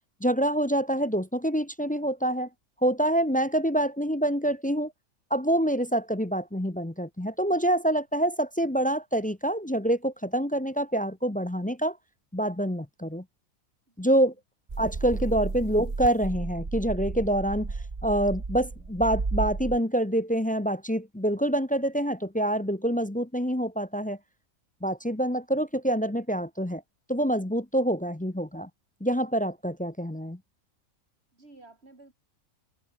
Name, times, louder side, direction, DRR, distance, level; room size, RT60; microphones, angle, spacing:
voice 1, 0.2-2.5 2.8-4.9 5.3-12.0 12.3-13.2 14.0-14.3 14.8-17.7 18.0-24.2 24.8-26.8 27.1-28.7 29.0-30.4, right 1 dB, 10° left, 0.5 m, -26 dB
sound 1, 14.7-19.8, right 3 dB, 30° right, 1.8 m, -33 dB
voice 2, 24.8-25.1 31.3-32.1, right 2 dB, 50° right, 4.5 m, -54 dB
omnidirectional pair, 1.4 m